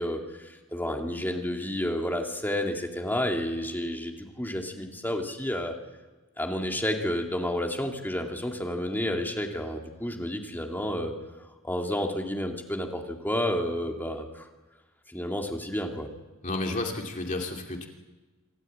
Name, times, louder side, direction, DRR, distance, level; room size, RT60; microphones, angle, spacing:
voice 1, 0.0-5.7 6.4-11.1 11.6-14.5 15.1-16.1, left 1 dB, 10° left, 2 dB, 2.4 m, -30 dB
voice 2, 16.4-17.9, left 2 dB, 40° left, 1 dB, 2.6 m, -31 dB
26.5 x 13.0 x 8.7 m, 1.2 s
head